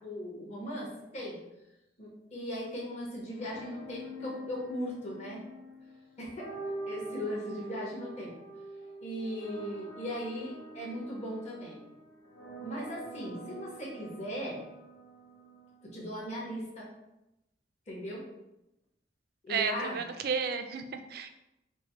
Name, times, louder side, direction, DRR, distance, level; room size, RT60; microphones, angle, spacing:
voice 1, 0.0-1.4 2.0-5.4 6.2-6.4 6.9-8.3 9.0-11.8 12.6-14.6 15.8-16.9 17.9-18.2 19.4-20.0, equal, 35° left, -6 dB, 1.1 m, -38 dB
sound 1, 3.3-16.2, right 1 dB, 55° left, 1.0 m, -46 dB
voice 2, 19.5-20.8 21.1-21.4, right 6 dB, 50° right, 8 dB, 0.3 m, -32 dB
5.1 x 2.1 x 2.9 m, 0.91 s
head